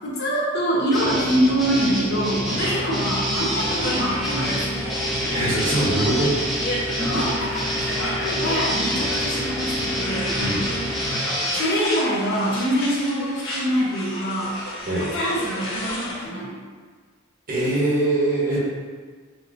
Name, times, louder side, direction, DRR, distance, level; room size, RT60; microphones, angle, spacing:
voice 1, 0.0-4.6 7.0-7.9 8.2-10.4 11.6-14.6 15.1-16.6, equal, 55° left, -5 dB, 1.0 m, -24 dB
sound 1, 0.9-11.6, equal, ahead, 0.9 m, -28 dB
sound 2, 1.0-11.1, left 1 dB, 20° left, 1.3 m, -33 dB
sound 3, 2.6-16.2, left 1 dB, 85° left, 1.3 m, -31 dB
voice 2, 5.3-6.3 10.3-10.7 14.9-15.1 17.5-18.6, right 1 dB, 45° right, -7 dB, 1.2 m, -22 dB
6.1 x 2.8 x 2.7 m, 1.5 s
head